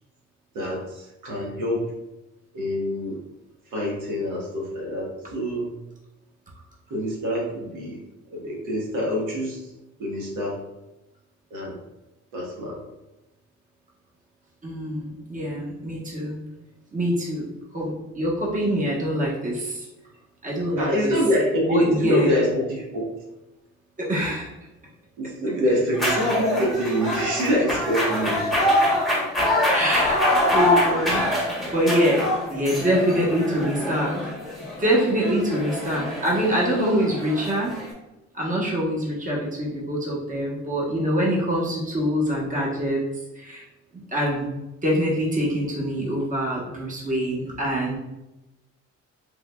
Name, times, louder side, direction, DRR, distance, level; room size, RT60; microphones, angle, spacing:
voice 1, 0.5-1.9 2.5-3.2 3.7-5.7 6.9-8.0 8.3-9.6 10.0-10.6 11.5-11.7 12.3-12.8 20.8-23.0 25.2-28.5, equal, 85° right, -3 dB, 1.2 m, -25 dB
voice 2, 14.6-16.4 16.9-17.4 17.7-19.9 20.4-21.1 21.7-22.3 24.0-24.5 29.7-30.2 30.5-34.2 34.8-37.7 38.3-43.0 43.4-43.6 43.9-44.5 44.8-48.0, equal, 25° right, -4 dB, 1.1 m, -24 dB
sound 1, 25.9-37.9, left 1 dB, ahead, 1.0 m, -25 dB
3.6 x 3.3 x 2.2 m, 0.96 s
cardioid pair, 90°, 30 cm